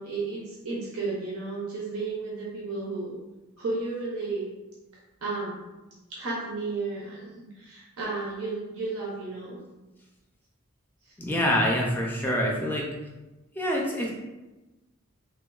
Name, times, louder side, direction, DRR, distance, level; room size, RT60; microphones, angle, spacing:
voice 1, 0.0-3.2 3.6-4.5 5.2-5.6 6.1-9.6 11.0-11.1, right 3 dB, 80° right, -5 dB, 0.7 m, -33 dB
voice 2, 11.2-12.9 13.6-14.1, equal, 10° left, -2 dB, 0.4 m, -26 dB
3.4 x 2.2 x 2.3 m, 1.1 s
head